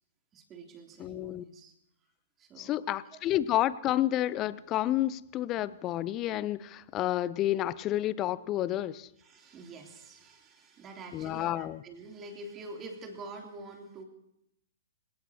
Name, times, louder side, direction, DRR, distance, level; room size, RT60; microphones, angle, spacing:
voice 1, 0.3-1.7 2.4-2.9 9.2-14.0, right 2 dB, 20° right, 1 dB, 3.0 m, -46 dB
voice 2, 1.0-1.4 2.6-9.1 11.1-11.8, left 13 dB, 25° left, 18 dB, 0.5 m, -30 dB
26.5 x 18.0 x 2.8 m, 0.80 s
figure-of-eight pair, 115°, 0 cm